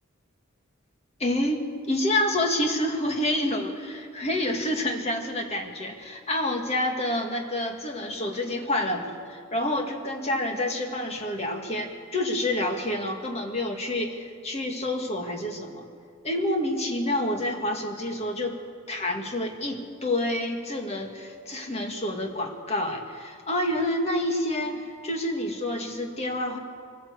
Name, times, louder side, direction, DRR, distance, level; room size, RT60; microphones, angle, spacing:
voice 1, 1.2-15.8 16.2-18.6 18.9-26.6, left 1 dB, 30° left, 3 dB, 2.0 m, -28 dB
23.0 x 14.5 x 8.1 m, 2.3 s
head